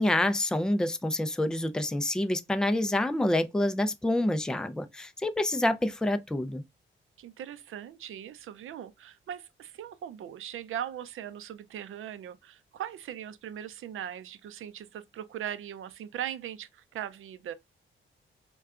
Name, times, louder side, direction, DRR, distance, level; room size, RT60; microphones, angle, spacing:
voice 1, 0.0-6.6, left 1 dB, 5° left, 0.4 m, -27 dB
voice 2, 7.2-17.5, right 10 dB, 75° right, 0.5 m, -39 dB
4.5 x 2.2 x 2.4 m
cardioid pair, 110°, 21 cm